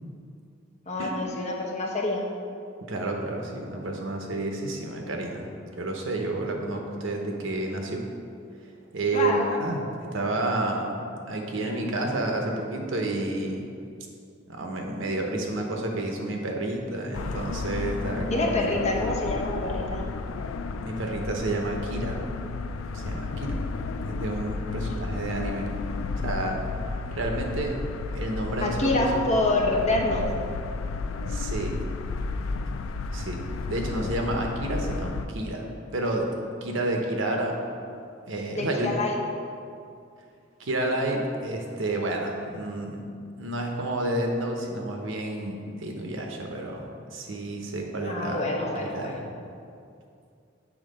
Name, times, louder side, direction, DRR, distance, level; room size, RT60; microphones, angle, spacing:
voice 1, 0.9-2.2 9.1-9.5 18.3-20.0 28.6-30.3 38.6-39.1 48.1-49.3, left 2 dB, 35° left, -1 dB, 0.8 m, -26 dB
voice 2, 2.9-5.5 5.8-8.0 8.9-9.8 10.1-11.0 11.3-13.7 14.5-18.9 20.8-22.2 22.9-23.5 24.0-25.7 26.2-26.6 27.1-27.8 28.1-28.9 29.2-29.4 31.3-31.8 33.1-33.4 33.7-36.3 36.6-37.6 38.3-39.0 40.6-43.0 43.4-48.4 48.8-49.2, right 2 dB, 70° right, 2 dB, 0.8 m, -30 dB
sound 1, 17.1-35.3, left 3 dB, 85° left, 0.3 m, -32 dB
7.3 x 3.6 x 5.2 m, 2.4 s
head